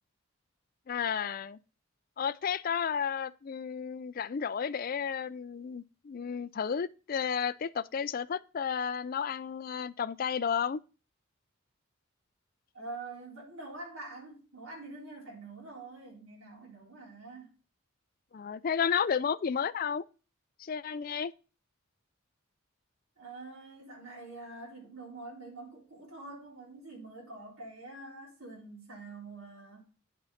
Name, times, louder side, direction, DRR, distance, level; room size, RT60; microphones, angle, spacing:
voice 1, 0.9-1.6 2.2-10.8 18.3-20.0 20.6-21.3, left 7 dB, 45° left, 0.4 m, -32 dB
voice 2, 12.7-17.5 23.2-29.9, right 2 dB, 75° right, 4.0 m, -46 dB
9.5 x 5.9 x 4.2 m
head